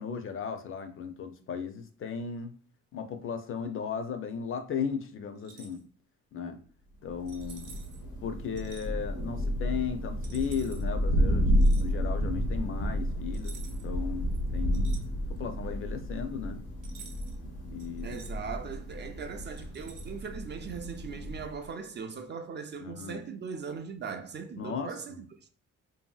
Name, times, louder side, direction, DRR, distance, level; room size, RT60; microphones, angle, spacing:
voice 1, 0.0-2.5 2.9-5.8 6.3-6.6 7.0-7.8 8.2-14.9 15.4-16.6 17.7-18.2 22.8-23.2 24.5-24.9, left 6 dB, 45° left, 0.4 m, -36 dB
sound 1, 5.4-5.8 7.3-8.0 8.6-8.9 10.2-10.8 11.6-11.9 13.3-14.0 14.3-15.5 16.8-17.4 17.8-18.3 19.4-20.2 20.8-21.0, right 6 dB, 85° right, 0.7 m, -51 dB
Thunder, 7.1-21.7, equal, 85° left, 0.8 m, -31 dB
voice 2, 18.0-25.4, right 6 dB, 35° right, 0.4 m, -39 dB
2.7 x 2.6 x 2.3 m
cardioid pair, 90°, 30 cm